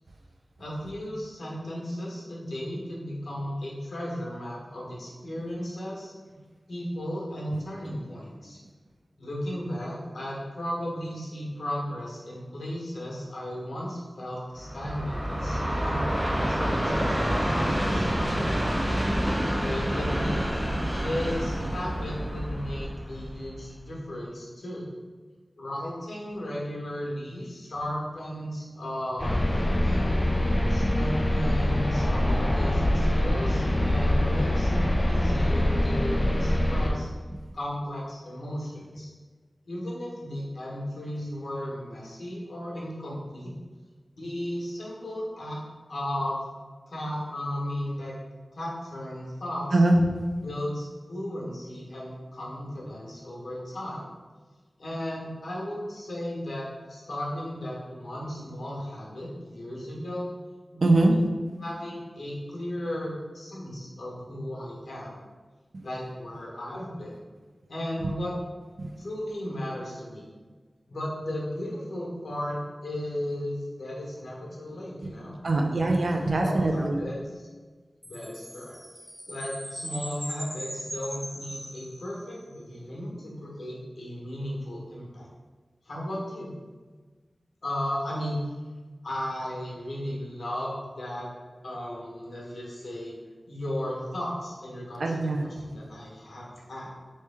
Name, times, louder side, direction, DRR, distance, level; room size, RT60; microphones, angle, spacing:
voice 1, 0.6-6.1 6.7-8.6 9.2-18.6 19.5-20.5 21.0-24.9 25.6-30.2 30.7-37.1 37.5-39.1 39.7-43.5 44.2-45.6 45.9-46.4 46.9-48.1 48.5-49.8 50.4-54.0 54.8-60.3 60.7-61.2 61.6-65.1 65.8-67.2 67.7-68.4 69.0-70.3 70.9-75.3 76.3-77.2 78.0-78.8 79.3-85.3 85.8-86.5 87.6-88.4 89.0-91.3 91.6-93.2 93.5-96.9, left 1 dB, 85° left, -4 dB, 1.2 m, -35 dB
Train, 14.6-23.8, equal, 25° right, 0.8 m, -28 dB
sound 1, 29.2-36.9, left 1 dB, 30° left, 0.6 m, -24 dB
voice 2, 60.8-61.1 68.8-68.9 75.4-77.0 95.0-95.5, right 2 dB, 75° right, 2 dB, 0.5 m, -23 dB
Chime, 78.0-82.5, equal, ahead, 1.4 m, -40 dB
4.2 x 3.2 x 3.5 m, 1.4 s
wide cardioid pair, 70°, 0 cm